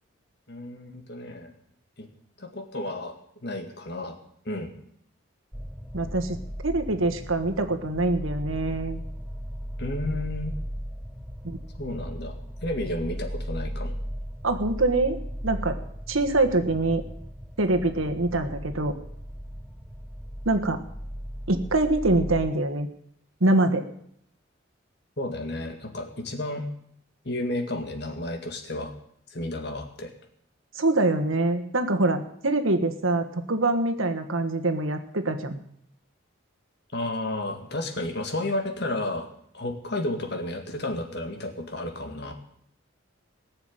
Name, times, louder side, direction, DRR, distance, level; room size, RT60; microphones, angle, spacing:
voice 1, 0.5-1.5 2.0-2.1 2.4-3.1 3.4-4.2 4.5-4.7 9.8-10.6 11.8-14.0 25.2-26.7 27.2-28.9 29.3-30.1 36.9-39.3 39.5-42.3, left 1 dB, 50° left, 4 dB, 2.1 m, -32 dB
sound 1, 5.5-22.5, equal, ahead, 0.7 m, -36 dB
voice 2, 5.9-6.4 6.6-9.0 11.4-11.6 14.4-15.2 15.4-15.8 16.1-17.0 17.6-18.9 20.4-20.8 21.5-22.9 23.4-23.9 30.7-35.6, right 2 dB, 80° right, 7 dB, 1.5 m, -24 dB
18.5 x 7.1 x 9.0 m, 0.70 s
head